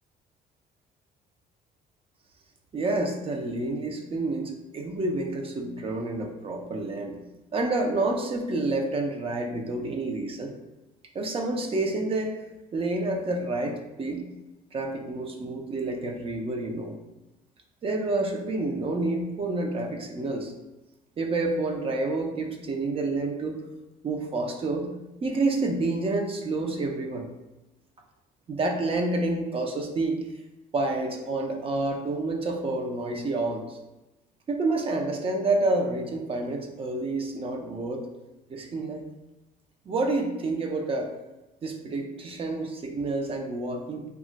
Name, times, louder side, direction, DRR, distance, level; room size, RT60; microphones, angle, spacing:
voice 1, 2.7-7.2 7.5-10.5 11.1-12.4 12.7-14.2 14.7-17.0 17.8-20.5 21.2-23.6 24.0-24.9 25.2-27.3 28.5-30.2 30.7-33.8 34.5-38.0 38.5-39.1 39.9-41.1 41.6-44.1, right 2 dB, 35° right, 3 dB, 0.4 m, -28 dB
2.3 x 2.1 x 3.8 m, 1.0 s
cardioid pair, 110°, 17 cm